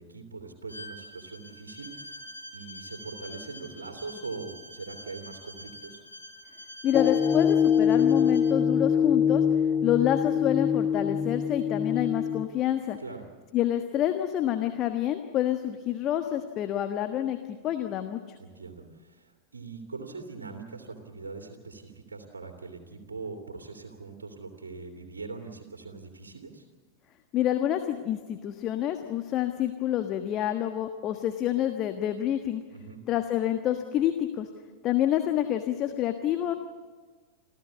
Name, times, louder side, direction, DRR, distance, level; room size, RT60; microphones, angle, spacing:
voice 1, 0.0-2.3 2.5-6.0 13.0-13.3 18.4-26.6 32.7-33.0, right 4 dB, 70° right, 3 dB, 2.7 m, -42 dB
Bowed string instrument, 0.7-8.6, left 1 dB, 90° left, 3.9 m, -46 dB
voice 2, 6.8-9.4 9.8-13.0 13.5-18.2 27.3-32.6 33.1-34.5 34.8-36.6, left 11 dB, 35° left, 7 dB, 1.3 m, -28 dB
sound 1, 6.9-12.4, left 7 dB, 20° left, 0.7 m, -24 dB
27.0 x 15.0 x 8.5 m, 1.4 s
figure-of-eight pair, 90°, 0 cm